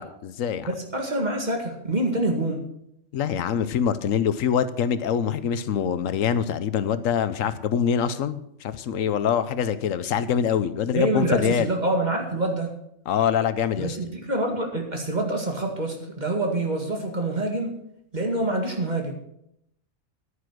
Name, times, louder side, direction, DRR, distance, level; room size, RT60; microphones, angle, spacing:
voice 1, 0.0-0.7 3.1-11.7 13.1-14.0, left 8 dB, 80° left, 13 dB, 1.1 m, -24 dB
voice 2, 0.7-2.6 10.9-12.7 13.8-17.8 18.1-19.1, right 2 dB, 35° right, 2 dB, 2.1 m, -26 dB
10.5 x 9.6 x 6.1 m, 0.77 s
omnidirectional pair, 1.4 m